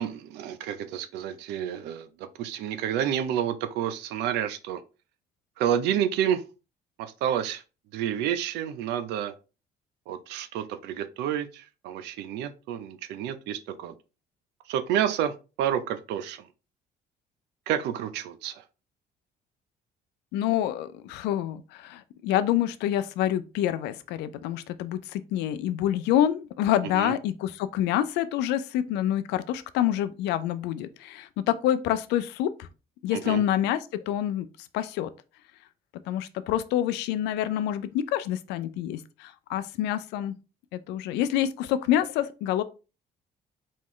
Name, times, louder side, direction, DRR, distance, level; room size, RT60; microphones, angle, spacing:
voice 1, 0.0-4.8 5.6-6.4 7.0-7.6 7.9-9.3 10.1-13.9 14.7-16.5 17.7-18.6 26.9-27.1 33.1-33.4, right 10 dB, 90° right, 0.6 m, -29 dB
voice 2, 20.3-32.7 33.0-34.5 34.7-35.1 36.1-40.4 40.7-42.6, left 11 dB, 90° left, 0.5 m, -27 dB
4.3 x 3.1 x 3.8 m
cardioid pair, 110°, 17 cm